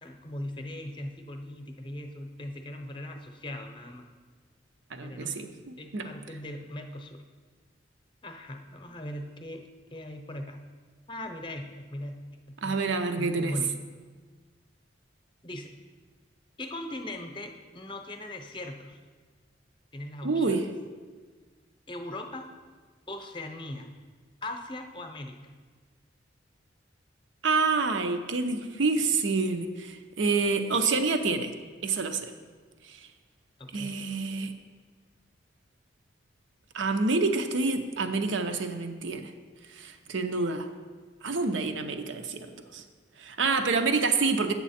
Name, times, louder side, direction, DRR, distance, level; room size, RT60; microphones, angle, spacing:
voice 1, 0.0-4.1 5.0-5.4 5.8-7.2 8.2-9.6 9.9-10.6 11.1-12.8 13.2-13.7 15.4-15.7 16.6-19.0 19.9-20.6 21.9-22.5 23.1-23.9 24.4-25.5 33.6-34.0, left 1 dB, 25° left, 5 dB, 0.7 m, -39 dB
voice 2, 4.9-6.1 12.6-13.6 20.2-20.7 27.4-31.5 31.8-32.3 32.9-33.1 33.7-34.5 36.7-39.3 39.7-40.7 41.2-42.5 42.7-42.8 43.2-44.5, right 4 dB, 75° right, 8 dB, 0.6 m, -28 dB
8.3 x 7.2 x 4.2 m, 1.5 s
head